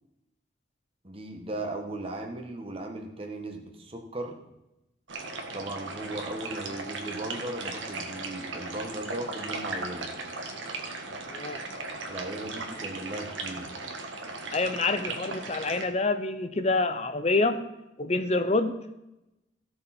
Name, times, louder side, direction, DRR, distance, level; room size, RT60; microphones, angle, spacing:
voice 1, 1.0-4.4 5.5-10.1 12.1-13.7, right 1 dB, 30° right, 3 dB, 1.6 m, -37 dB
sound 1, 5.1-15.9, right 3 dB, 80° right, 1.7 m, -37 dB
voice 2, 11.3-11.6 14.5-17.6 18.0-18.7, left 3 dB, 35° left, 10 dB, 0.7 m, -27 dB
16.5 x 6.7 x 4.4 m, 0.91 s
head